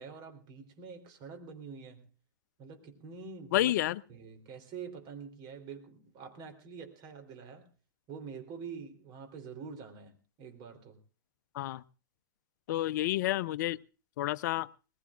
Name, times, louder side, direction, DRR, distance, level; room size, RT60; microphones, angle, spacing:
voice 1, 0.0-2.1 2.6-3.7 4.1-7.7 8.1-11.0, right 6 dB, 40° right, 3.6 m, -46 dB
voice 2, 3.5-4.0 11.5-11.8 12.7-13.8 14.2-14.7, left 15 dB, 55° left, 0.7 m, -29 dB
21.5 x 20.5 x 2.5 m
hypercardioid pair, 115°, 12 cm